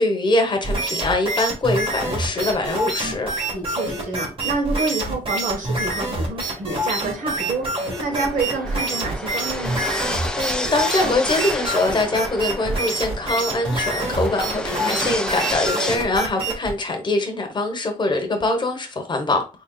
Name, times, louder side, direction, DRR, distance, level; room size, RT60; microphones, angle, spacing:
voice 1, 0.0-3.3 10.4-19.4, left 2 dB, 35° left, 1.0 m, -23 dB
sound 1, 0.6-16.7, right 1 dB, 40° right, 1.5 m, -26 dB
sound 2, 1.8-16.0, left 1 dB, 5° left, 0.5 m, -32 dB
voice 2, 3.5-9.9, right 3 dB, 75° right, 1.3 m, -28 dB
3.9 x 3.6 x 2.3 m
cardioid pair, 105°, 13 cm